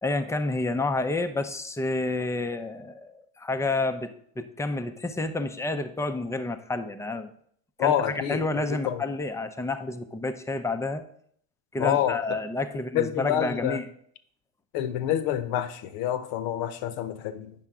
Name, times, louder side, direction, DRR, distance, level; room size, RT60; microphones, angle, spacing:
voice 1, 0.0-7.3 7.8-7.9 8.3-11.0 11.7-13.8, left 2 dB, 5° left, 0.5 m, -29 dB
voice 2, 7.8-9.0 11.8-12.2 12.9-13.8 14.7-17.5, left 10 dB, 60° left, 0.9 m, -27 dB
8.9 x 5.7 x 3.6 m
hypercardioid pair, 100°, 41 cm